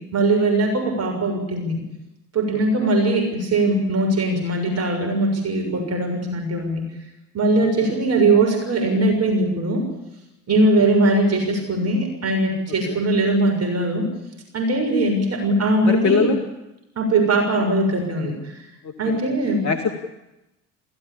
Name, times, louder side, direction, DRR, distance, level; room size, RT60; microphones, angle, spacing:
voice 1, 0.1-1.8 2.3-6.8 7.3-9.8 10.5-14.1 14.5-16.3 16.9-18.6 19.0-19.6, right 2 dB, 35° right, 2 dB, 6.6 m, -20 dB
voice 2, 15.8-16.4 18.8-19.2 19.6-19.9, left 6 dB, 35° left, 5 dB, 2.3 m, -23 dB
29.0 x 15.5 x 8.7 m, 0.93 s
figure-of-eight pair, 65°, 46 cm